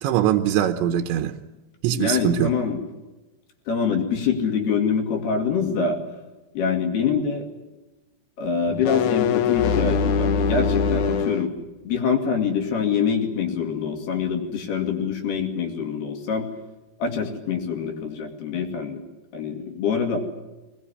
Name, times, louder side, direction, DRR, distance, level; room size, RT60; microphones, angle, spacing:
voice 1, 0.0-1.4 1.8-2.5, right 11 dB, 85° right, 6 dB, 3.3 m, -22 dB
voice 2, 1.9-2.8 3.7-6.0 6.5-7.4 8.4-11.5 11.8-16.5 17.0-19.0 19.3-20.2, left 6 dB, 65° left, 3 dB, 4.4 m, -25 dB
sound 1, 8.7-11.5, left 6 dB, 80° left, 1.7 m, -22 dB
22.0 x 20.0 x 9.9 m, 1.1 s
omnidirectional pair, 5.1 m